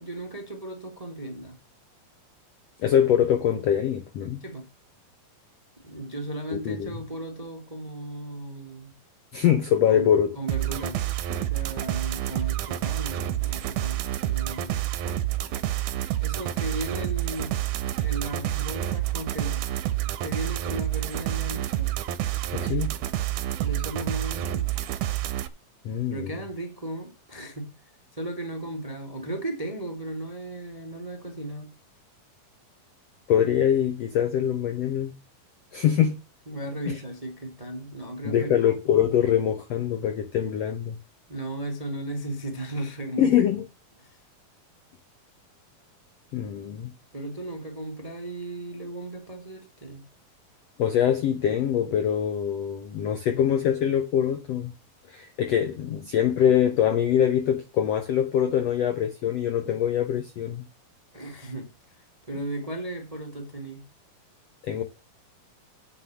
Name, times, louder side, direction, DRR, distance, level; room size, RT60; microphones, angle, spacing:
voice 1, 0.0-1.6 4.4-4.7 5.8-8.9 9.9-11.0 11.5-14.9 16.2-17.6 17.9-19.6 20.2-21.9 23.6-24.7 26.1-27.7 28.1-31.7 36.5-38.6 41.3-43.4 44.0-44.2 47.1-50.0 61.1-61.7 62.3-63.8, right 1 dB, 30° right, 0.7 m, -36 dB
voice 2, 2.8-4.4 6.5-6.9 9.3-10.3 22.5-22.9 25.8-26.3 33.3-35.1 35.7-36.2 36.9-37.0 38.2-41.0 43.2-43.6 46.3-46.9 50.8-54.7 55.1-60.6 64.6-64.8, left 9 dB, 75° left, 1.5 m, -23 dB
sound 1, 10.5-25.5, right 13 dB, 70° right, 2.0 m, -28 dB
7.9 x 6.8 x 7.2 m
omnidirectional pair, 4.0 m